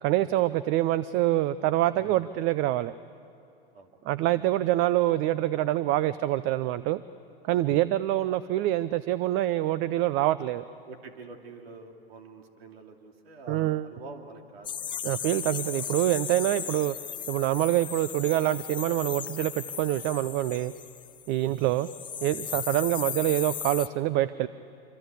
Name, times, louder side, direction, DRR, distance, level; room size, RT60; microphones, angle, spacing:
voice 1, 0.0-2.9 4.1-7.0 7.4-10.6 13.5-13.9 15.0-17.0 17.3-20.7 21.3-21.9 22.2-24.5, right 14 dB, 40° right, 16 dB, 0.6 m, -26 dB
voice 2, 10.8-15.3 21.4-21.6 22.4-22.6, right 4 dB, 75° right, 4 dB, 3.0 m, -47 dB
sound 1, 14.6-21.3 21.6-23.9, left 8 dB, 15° left, 0.5 m, -36 dB
25.5 x 25.0 x 8.3 m, 2.7 s
hypercardioid pair, 110°, 31 cm